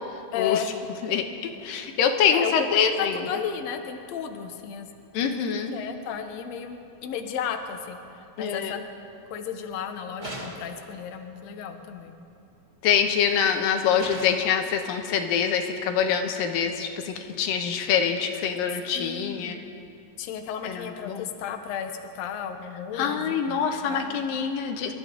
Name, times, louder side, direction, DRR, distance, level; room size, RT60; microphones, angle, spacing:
voice 1, 0.3-0.7 2.3-4.9 5.2-5.3 5.7-8.0 8.4-8.8 9.3-12.2 18.9-19.6 20.2-24.3, left 7 dB, 65° left, 5 dB, 1.9 m, -34 dB
voice 2, 1.0-3.4 5.1-5.7 8.4-8.8 12.8-19.6 20.6-21.3 22.9-24.9, left 7 dB, 80° left, 5 dB, 2.7 m, -25 dB
sound 1, 10.2-10.8 12.9-13.3 14.0-14.5, equal, 20° right, 1.4 m, -38 dB
28.0 x 13.0 x 3.9 m, 2.7 s
omnidirectional pair, 4.1 m